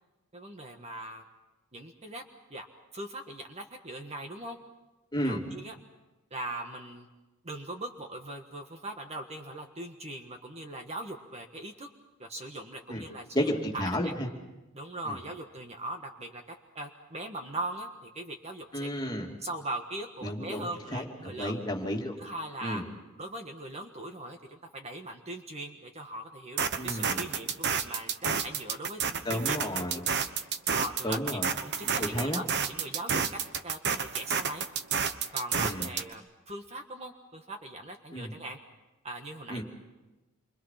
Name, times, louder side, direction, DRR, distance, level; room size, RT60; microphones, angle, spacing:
voice 1, 0.3-1.2 1.7-2.2 2.5-2.6 2.9-4.6 5.2-5.8 6.3-7.1 7.4-11.9 12.2-13.5 13.7-14.1 14.7-18.9 19.4-21.6 22.2-22.8 23.2-29.6 29.9-30.2 30.7-34.6 35.3-38.6 39.0-39.6, right 1 dB, 30° right, 4 dB, 1.6 m, -40 dB
voice 2, 13.3-14.3 15.1-15.2 18.7-19.3 20.2-22.2 22.6-22.8 26.8-27.2 29.2-30.0 31.0-31.5 32.0-32.4 35.5-35.9 38.1-38.3 39.5-39.6, equal, 20° left, 0 dB, 2.8 m, -32 dB
sound 1, 26.6-36.1, right 6 dB, 50° right, 1.1 m, -30 dB
28.0 x 24.5 x 5.8 m, 1.1 s
head